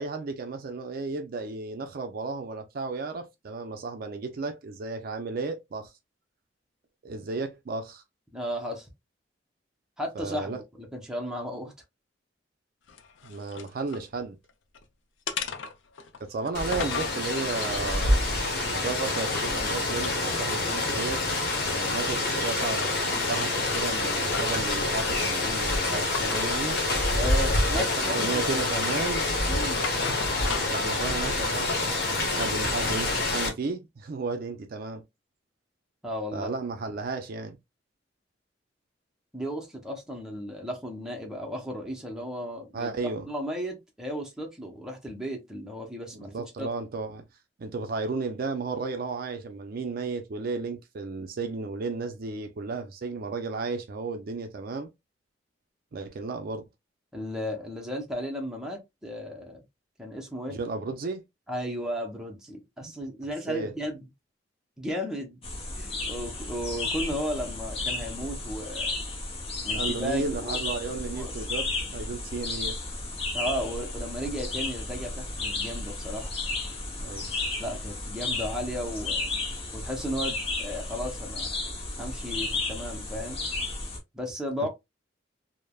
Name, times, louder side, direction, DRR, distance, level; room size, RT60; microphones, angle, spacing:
voice 1, 0.0-5.9 7.0-8.0 10.2-10.6 13.2-14.4 16.2-18.3 18.6-21.2 21.5-26.8 27.7-29.3 30.7-35.0 36.3-37.6 42.7-43.3 46.1-47.2 47.6-54.9 55.9-56.6 60.5-61.2 62.8-62.9 63.5-63.7 69.7-72.8 77.0-77.3 84.6-84.7, right 4 dB, 55° right, 0.4 m, -33 dB
voice 2, 8.3-8.9 10.0-11.7 27.1-28.4 29.5-29.9 36.0-36.5 39.3-46.3 46.6-46.7 57.1-59.6 60.0-60.6 61.5-64.1 64.8-65.4 65.8-68.9 69.6-70.6 71.1-71.3 73.3-76.3 77.6-79.4 79.7-81.6 82.0-83.4 84.1-84.7, equal, 5° right, 0.7 m, -34 dB
sound 1, 12.9-14.1 14.5-14.8 15.3-17.2 17.8-19.6 19.9-21.8 22.2-22.9 23.3-24.7 26.1-26.5 27.2-27.4 27.7-28.4 28.9-30.9 31.2-32.5, left 5 dB, 90° left, 0.4 m, -38 dB
Rain, 16.5-33.5, left 2 dB, 60° left, 1.0 m, -27 dB
sound 2, 65.4-84.0, left 3 dB, 35° left, 0.7 m, -33 dB
3.2 x 2.1 x 2.2 m
head